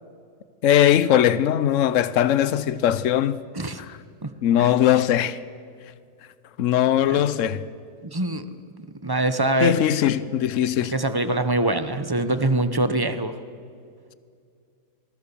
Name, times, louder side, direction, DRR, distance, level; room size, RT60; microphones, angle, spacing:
voice 1, 0.6-3.4 3.8-4.0 4.4-5.4 6.6-7.6 9.6-11.0, left 11 dB, 55° left, 1.0 m, -20 dB
voice 2, 8.0-8.4 9.0-9.8 10.9-13.3, right 2 dB, 20° right, 0.7 m, -23 dB
25.0 x 21.5 x 7.0 m
omnidirectional pair, 1.8 m